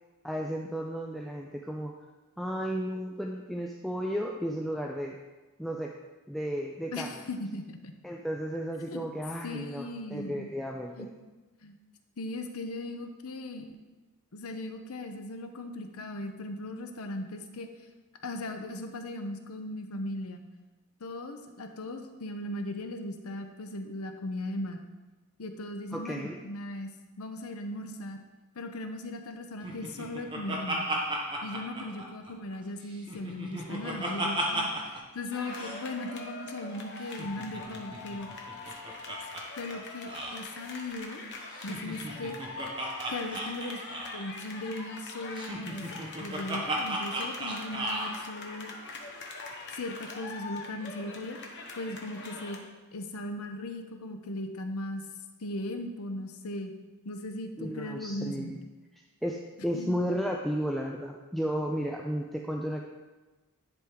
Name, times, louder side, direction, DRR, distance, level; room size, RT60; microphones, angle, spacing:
voice 1, 0.2-1.9 2.4-5.2 5.6-5.9 6.3-7.1 8.0-11.1 25.9-26.4 57.6-58.6 59.2-62.8, equal, ahead, 0 dB, 0.3 m, -33 dB
voice 2, 6.9-7.9 8.9-9.1 9.4-10.5 11.0-11.1 11.6-11.7 12.2-13.7 14.3-17.7 18.2-20.5 21.0-24.8 25.4-26.9 27.2-28.2 28.6-30.9 31.4-38.3 39.6-41.2 41.6-42.4 43.1-43.8 44.1-48.7 49.7-51.4 51.8-52.6 52.9-55.0 55.4-56.7 57.0-58.6 59.7-60.0, left 1 dB, 80° left, 6 dB, 0.7 m, -38 dB
Laughter, 29.6-32.6 32.9-35.0 35.3-35.4 35.5-35.8 37.0-39.4 39.7-39.8 40.1-40.4 41.5-44.3 45.3-48.1, right 1 dB, 25° right, 1.1 m, -35 dB
sound 1, 35.3-52.6, left 3 dB, 55° left, 1.0 m, -43 dB
10.5 x 3.6 x 4.6 m, 1.2 s
head